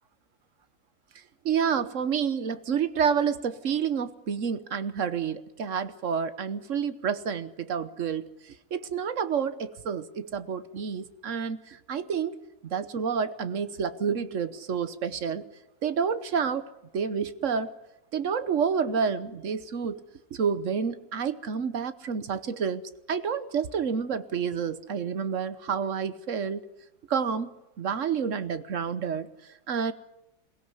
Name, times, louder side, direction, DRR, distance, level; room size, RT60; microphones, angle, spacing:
voice 1, 1.4-12.4 12.6-15.4 15.8-16.7 16.9-17.7 18.1-20.0 20.3-22.8 23.1-26.6 27.1-29.3 29.7-29.9, right 6 dB, 55° right, 14 dB, 1.3 m, -29 dB
22.5 x 17.5 x 9.7 m, 0.89 s
omnidirectional pair, 1.6 m